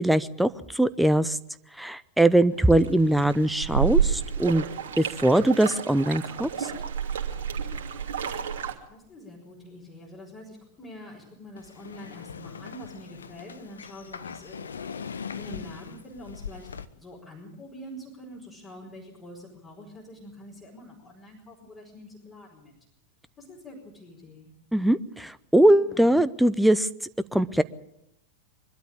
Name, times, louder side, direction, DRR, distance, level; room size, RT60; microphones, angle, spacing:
voice 1, 0.0-1.4 1.8-4.6 5.0-6.7 24.7-26.9 27.3-27.6, right 1 dB, ahead, 15 dB, 0.8 m, -21 dB
sound 1, 2.7-8.7, right 7 dB, 60° right, 2.8 m, -30 dB
voice 2, 8.9-22.7 23.4-24.5 25.7-26.2, left 1 dB, 25° left, -3 dB, 5.1 m, -45 dB
sound 2, 11.6-16.8, left 6 dB, 70° left, 1.0 m, -40 dB
24.0 x 12.5 x 8.8 m, 0.81 s
figure-of-eight pair, 90°, 0 cm